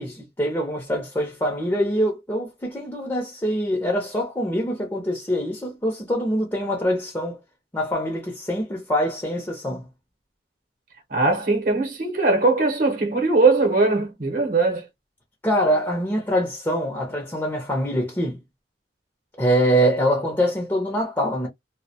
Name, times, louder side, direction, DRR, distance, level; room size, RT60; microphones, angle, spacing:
voice 1, 0.0-7.4 7.7-9.9 15.4-18.4 19.4-21.5, equal, 15° left, 0.6 m, -24 dB
voice 2, 11.1-14.9, right 3 dB, 50° right, 0.8 m, -20 dB
2.2 x 2.1 x 2.7 m
head